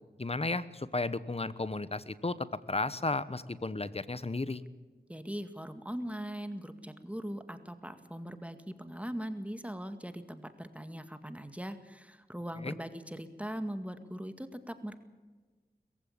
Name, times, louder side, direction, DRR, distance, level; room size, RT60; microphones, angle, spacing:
voice 1, 0.2-4.6 12.6-12.7, left 3 dB, 35° left, 16 dB, 1.2 m, -34 dB
voice 2, 5.1-14.9, equal, 10° right, 9 dB, 2.0 m, -40 dB
22.0 x 15.5 x 8.8 m, 1.3 s
cardioid pair, 40°, 17 cm